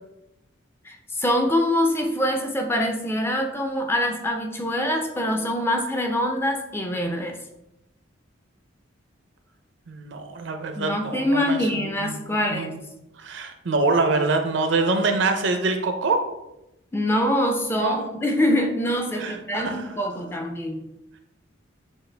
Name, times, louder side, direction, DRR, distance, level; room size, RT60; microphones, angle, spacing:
voice 1, 0.8-7.4 10.8-12.8 16.9-20.9, left 1 dB, 10° left, 3 dB, 0.4 m, -24 dB
voice 2, 9.9-12.2 12.5-12.8 13.2-16.2 17.7-18.0 19.2-19.9, right 3 dB, 60° right, 6 dB, 0.5 m, -25 dB
6.4 x 2.4 x 3.3 m, 0.90 s
head